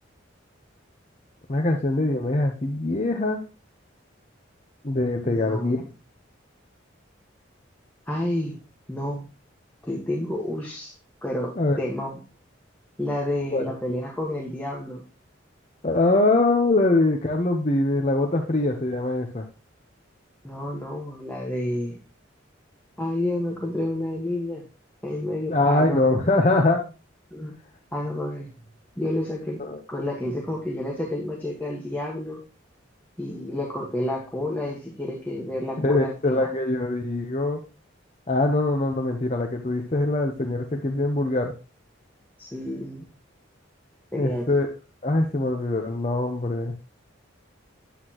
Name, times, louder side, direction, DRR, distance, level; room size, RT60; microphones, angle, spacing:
voice 1, 1.5-3.4 4.8-5.8 11.6-11.8 13.5-13.7 15.8-19.5 25.5-26.8 29.6-29.8 35.8-37.6 38.3-41.5 44.2-44.7 45.0-46.7, left 2 dB, 35° left, 3 dB, 0.8 m, -23 dB
voice 2, 5.2-5.8 8.1-8.6 8.9-9.3 9.8-10.9 11.2-12.2 13.0-15.0 20.4-22.0 23.0-24.6 25.0-26.2 27.3-27.5 27.9-28.5 29.0-29.6 29.9-32.4 33.2-36.5 42.4-43.0 44.1-44.5, left 1 dB, 10° left, -1 dB, 1.5 m, -30 dB
10.0 x 8.1 x 3.0 m, 0.33 s
head